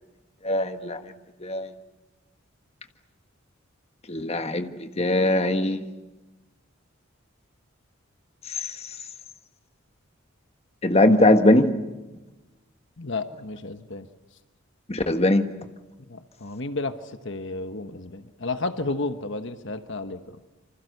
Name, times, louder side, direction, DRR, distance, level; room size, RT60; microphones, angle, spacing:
voice 1, 0.4-1.0 1.4-1.7 4.1-5.8 8.5-8.8 10.8-11.8 14.9-15.5, left 1 dB, 30° left, 7 dB, 1.5 m, -21 dB
voice 2, 13.0-14.1 16.1-20.4, left 2 dB, 60° left, 9 dB, 1.3 m, -32 dB
28.5 x 26.0 x 6.8 m, 1.1 s
head